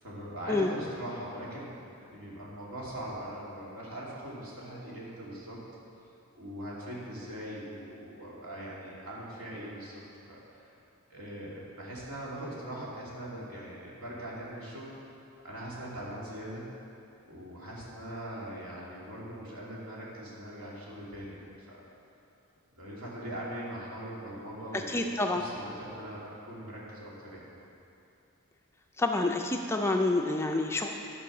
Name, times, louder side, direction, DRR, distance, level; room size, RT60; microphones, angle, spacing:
voice 1, 0.0-1.7 2.1-5.6 6.3-10.0 10.3-10.7 11.1-14.9 15.4-16.7 17.3-21.7 22.8-25.0 25.4-27.4, right 1 dB, 70° right, -6 dB, 2.5 m, -41 dB
voice 2, 24.7-25.4 29.0-30.9, left 2 dB, 10° left, 2 dB, 0.4 m, -28 dB
11.0 x 5.4 x 6.0 m, 2.6 s
head